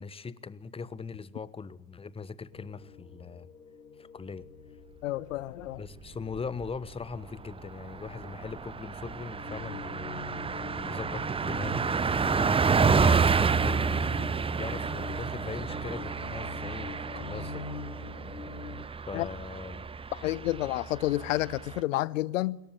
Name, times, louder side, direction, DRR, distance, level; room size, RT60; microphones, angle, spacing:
voice 1, 0.0-3.5 4.0-4.5 5.8-13.8 14.5-17.7 19.1-19.9, left 5 dB, 10° left, 1.2 m, -40 dB
sound 1, 2.5-18.8, left 4 dB, 85° left, 1.5 m, -45 dB
voice 2, 5.0-5.8 19.1-19.3 20.1-22.6, left 16 dB, 60° left, 1.0 m, -30 dB
Car passing by, 6.1-6.8 7.1-7.2 7.5-21.8, right 5 dB, 10° right, 1.0 m, -29 dB
26.0 x 22.0 x 10.0 m
figure-of-eight pair, 75°, 45 cm